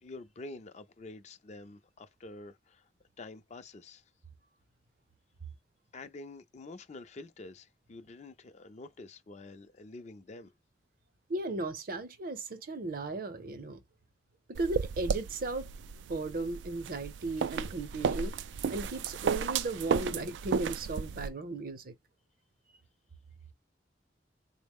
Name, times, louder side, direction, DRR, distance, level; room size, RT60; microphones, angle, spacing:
voice 1, 0.0-2.9 3.2-4.0 5.9-10.5, left 2 dB, 40° left, 0.5 m, -47 dB
voice 2, 11.3-13.8 14.5-15.7 16.1-18.3 18.7-21.9, right 2 dB, 55° right, 0.7 m, -36 dB
sound 1, 14.6-21.3, right 6 dB, 85° right, 0.3 m, -34 dB
3.8 x 2.0 x 3.5 m
head